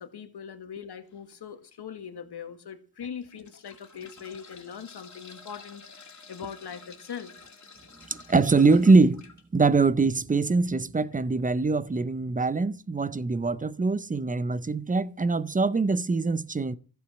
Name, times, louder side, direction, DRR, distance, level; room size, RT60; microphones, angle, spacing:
voice 1, 0.0-7.3, left 7 dB, 75° left, 1.8 m, -41 dB
sound 1, 1.1-1.3 2.0-2.1 3.0-9.4 11.0-11.1 11.4-11.5, left 4 dB, 45° left, 2.6 m, -50 dB
voice 2, 8.3-9.3 9.5-16.8, right 3 dB, 20° right, 0.5 m, -23 dB
14.5 x 8.4 x 7.0 m
wide cardioid pair, 165°, 39 cm